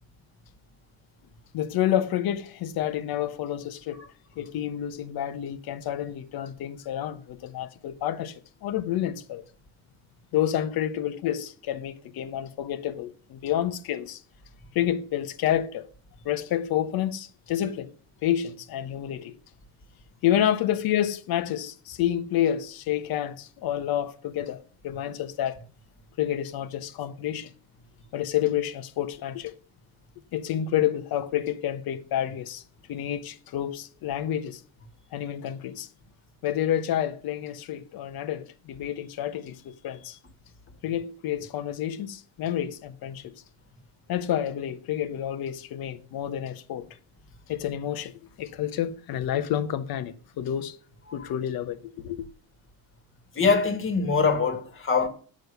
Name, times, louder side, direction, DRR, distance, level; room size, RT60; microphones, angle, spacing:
voice 1, 1.5-4.0 4.4-9.4 10.3-14.2 14.7-15.9 16.2-17.9 18.2-19.4 20.2-24.6 24.8-25.6 26.2-27.5 28.1-29.5 30.3-32.6 32.9-34.6 35.1-35.9 36.4-40.2 40.8-43.3 44.1-46.9 47.5-50.8 51.1-51.8 52.0-52.3, left 11 dB, 60° left, 1.1 m, -29 dB
voice 2, 53.3-55.1, left 5 dB, 30° left, 1.8 m, -23 dB
8.6 x 6.5 x 6.7 m
cardioid pair, 120°, 42 cm